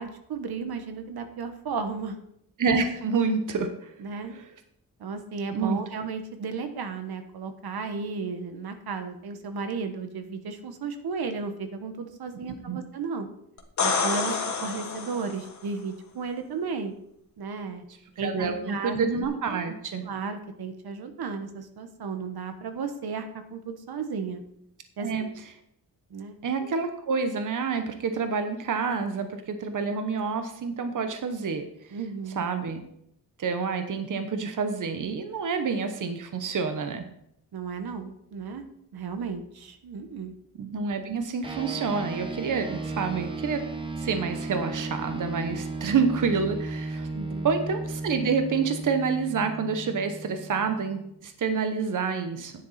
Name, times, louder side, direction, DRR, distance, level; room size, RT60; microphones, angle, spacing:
voice 1, 0.0-2.1 4.0-4.4 5.0-13.3 13.8-16.9 17.4-17.8 18.2-19.0 19.5-19.6 20.0-24.4 25.0-25.3 26.1-26.7 31.9-32.4 37.5-38.7 38.9-40.3 47.1-47.5, right 5 dB, 90° right, 8 dB, 1.2 m, -34 dB
voice 2, 2.6-3.9 4.3-4.4 5.5-5.8 12.5-12.8 18.2-20.1 25.0-25.3 26.4-31.6 32.4-32.8 33.4-37.1 40.6-43.6 44.0-47.1 47.4-52.5, right 5 dB, 55° right, 7 dB, 1.0 m, -28 dB
sound 1, 13.6-15.5 19.2-19.3, left 4 dB, 50° left, 1.5 m, -28 dB
sound 2, 41.4-51.2, right 2 dB, 15° right, 1.0 m, -35 dB
11.0 x 9.7 x 4.2 m, 0.75 s
wide cardioid pair, 175°, 37 cm